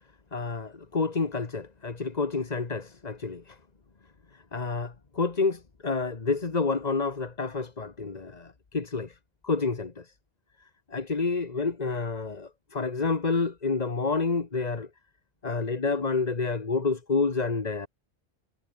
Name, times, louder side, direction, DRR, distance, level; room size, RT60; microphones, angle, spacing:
voice 1, 0.3-3.6 4.5-9.2 9.4-10.1 10.9-14.9 15.4-17.9, left 4 dB, 40° left, 1.5 m, -29 dB
omnidirectional pair, 1.1 m